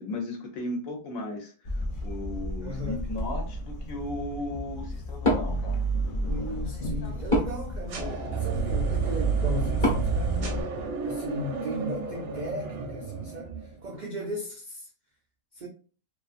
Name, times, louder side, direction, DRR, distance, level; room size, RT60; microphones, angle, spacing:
voice 1, 0.0-5.8, left 2 dB, 80° left, 1.0 m, -36 dB
sound 1, 1.6-10.6, right 2 dB, 60° left, 0.5 m, -31 dB
voice 2, 2.6-3.1 6.3-10.4 11.0-14.9 15.5-15.7, equal, 90° right, 0.4 m, -36 dB
Wood, 5.1-11.2, left 1 dB, 30° left, 0.8 m, -33 dB
sound 2, 7.9-13.9, right 5 dB, 60° right, 0.7 m, -32 dB
2.5 x 2.5 x 2.4 m
omnidirectional pair, 1.4 m